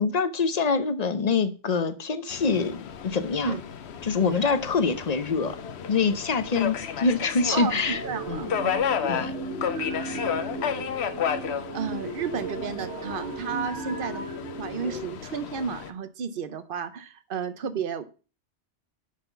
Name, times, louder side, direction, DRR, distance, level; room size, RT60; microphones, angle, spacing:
voice 1, 0.0-3.5 4.0-5.6 5.9-8.0 8.3-8.5 9.1-9.3, left 4 dB, 40° left, 0.8 m, -25 dB
Subway metro underground, 2.3-15.9, left 7 dB, 70° left, 1.0 m, -33 dB
voice 2, 7.5-8.5 11.4-14.2 14.6-18.0, right 6 dB, 55° right, 1.0 m, -32 dB
sound 1, 7.9-15.0, right 2 dB, 85° right, 2.0 m, -35 dB
6.4 x 5.9 x 6.9 m
omnidirectional pair, 1.2 m